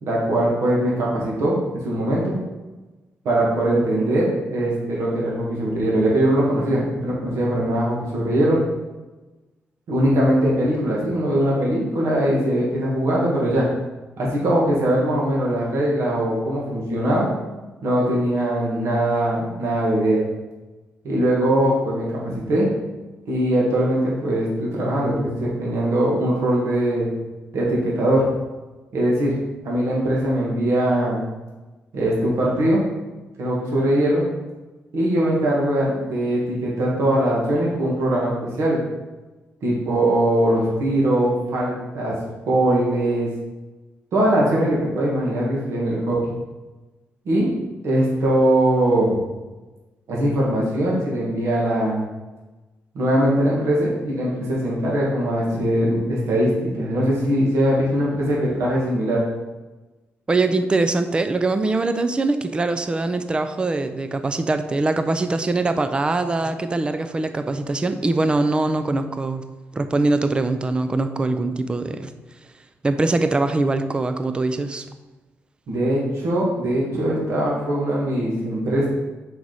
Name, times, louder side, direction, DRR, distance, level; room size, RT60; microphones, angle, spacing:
voice 1, 0.0-1.6 1.8-2.4 3.3-8.6 9.9-13.7 14.2-17.3 17.8-20.3 21.0-22.1 22.3-22.7 23.3-27.1 27.5-28.2 28.9-29.4 29.6-31.2 31.9-32.8 33.4-34.2 34.9-38.8 39.6-42.2 42.5-43.3 44.1-46.3 47.3-47.5 47.8-49.2 50.1-52.0 52.9-59.2 75.7-78.9, right 1 dB, 75° right, -4 dB, 1.8 m, -21 dB
voice 2, 60.3-69.4 69.7-72.1 72.8-74.8, right 2 dB, 20° right, 9 dB, 0.4 m, -22 dB
5.9 x 4.9 x 4.1 m, 1.1 s
cardioid pair, 125°, 5 cm